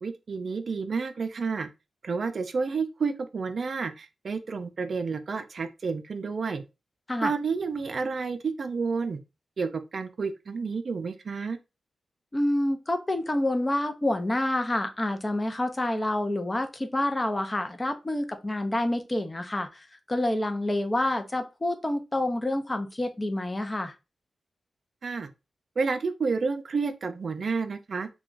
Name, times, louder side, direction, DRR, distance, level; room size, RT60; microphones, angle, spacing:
voice 1, 0.0-1.7 2.0-6.6 7.2-9.2 9.6-11.6 25.0-25.3 25.8-28.1, right 4 dB, 65° right, 0.4 m, -30 dB
voice 2, 12.3-23.9, left 1 dB, 25° left, 0.6 m, -28 dB
2.3 x 2.2 x 3.7 m
cardioid pair, 55°, 0 cm